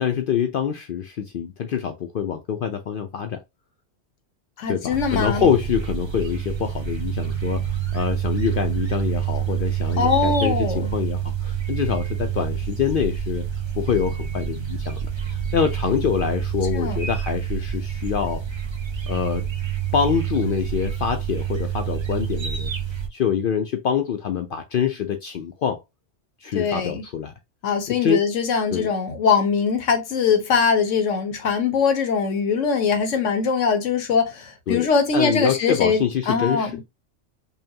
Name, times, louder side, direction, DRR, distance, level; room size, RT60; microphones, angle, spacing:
voice 1, 0.0-3.4 4.7-7.6 7.9-13.4 13.8-15.0 15.3-18.4 19.1-19.4 19.9-22.7 23.1-25.8 26.4-27.3 27.9-28.2 28.7-28.9 34.7-34.9 35.1-36.8, left 8 dB, 60° left, 0.6 m, -25 dB
voice 2, 4.6-5.5 10.0-10.9 16.7-17.0 26.5-27.0 27.6-36.8, left 5 dB, 90° left, 1.2 m, -22 dB
sound 1, 4.9-23.1, right 9 dB, 35° right, 0.5 m, -27 dB
5.4 x 2.1 x 2.7 m
omnidirectional pair, 1.2 m